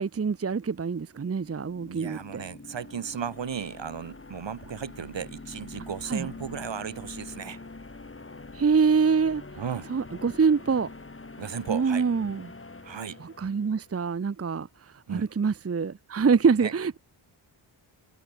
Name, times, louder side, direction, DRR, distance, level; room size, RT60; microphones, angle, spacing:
voice 1, 0.0-2.4 6.1-6.3 8.5-9.4 9.9-10.9 11.7-12.5 13.2-14.7 15.1-17.0, right 5 dB, 30° right, 0.8 m, -25 dB
sound 1, 1.1-14.0, left 3 dB, 25° left, 3.1 m, -45 dB
voice 2, 1.9-7.6 9.6-9.9 11.4-12.1 12.8-13.2 15.1-15.3 16.6-16.7, right 7 dB, 65° right, 1.8 m, -35 dB
wide cardioid pair, 80°, 48 cm